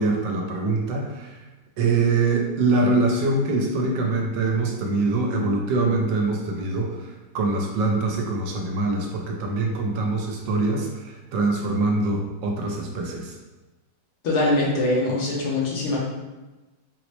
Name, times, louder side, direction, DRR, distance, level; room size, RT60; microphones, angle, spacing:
voice 1, 0.0-1.4 1.8-7.0 7.3-13.3, right 3 dB, 85° right, 1 dB, 1.3 m, -24 dB
voice 2, 14.2-16.0, left 2 dB, 70° left, -3 dB, 1.1 m, -22 dB
4.1 x 2.0 x 3.0 m, 1.1 s
omnidirectional pair, 2.0 m